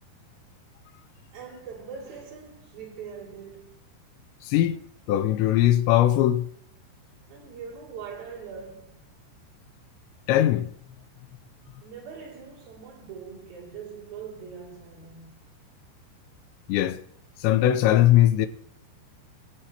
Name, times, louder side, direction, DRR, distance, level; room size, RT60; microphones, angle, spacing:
voice 1, 1.3-3.8 7.3-9.0 11.6-15.4, right 6 dB, 55° right, 4.1 m, -42 dB
voice 2, 4.4-4.8 5.1-6.4 10.3-10.7 16.7-17.0 17.4-18.5, left 13 dB, 80° left, 2.7 m, -20 dB
21.5 x 8.7 x 2.9 m
omnidirectional pair, 5.3 m